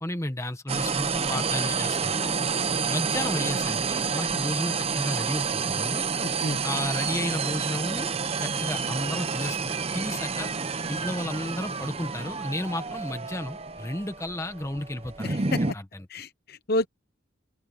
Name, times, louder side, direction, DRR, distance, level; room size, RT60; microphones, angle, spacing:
voice 1, 0.0-2.3 2.9-6.0 6.6-8.1 8.4-10.5 10.9-15.4 15.7-16.1, left 1 dB, 15° left, 1.1 m, -33 dB
sound 1, 0.7-15.7, right 5 dB, 30° right, 0.8 m, -29 dB
voice 2, 6.2-6.6 15.2-15.8 16.1-16.9, left 2 dB, 50° left, 1.0 m, -30 dB
open air
head